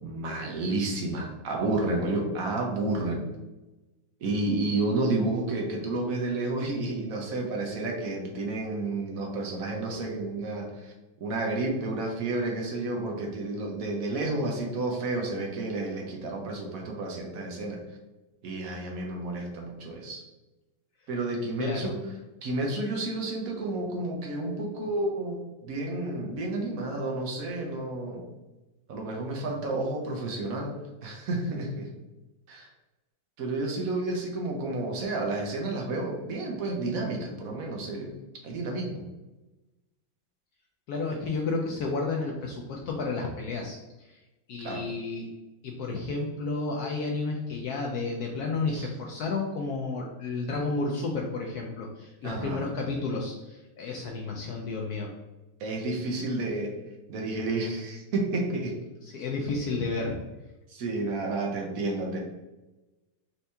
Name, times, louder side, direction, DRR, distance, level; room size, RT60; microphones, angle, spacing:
voice 1, 0.0-3.3 4.2-10.9 11.2-17.8 18.4-20.2 21.1-22.0 22.4-28.2 28.9-30.7 31.0-31.9 32.5-32.7 33.4-38.1 38.4-39.0 44.6-44.8 48.7-48.9 52.2-52.6 55.6-56.7 57.1-58.7 60.7-62.2, right 2 dB, 65° right, 1 dB, 0.9 m, -31 dB
voice 2, 21.6-21.9 40.9-44.2 44.5-45.3 45.6-55.1 59.0-60.2, left 3 dB, 85° left, 0 dB, 0.8 m, -31 dB
4.5 x 2.8 x 3.3 m, 1.1 s
omnidirectional pair, 2.2 m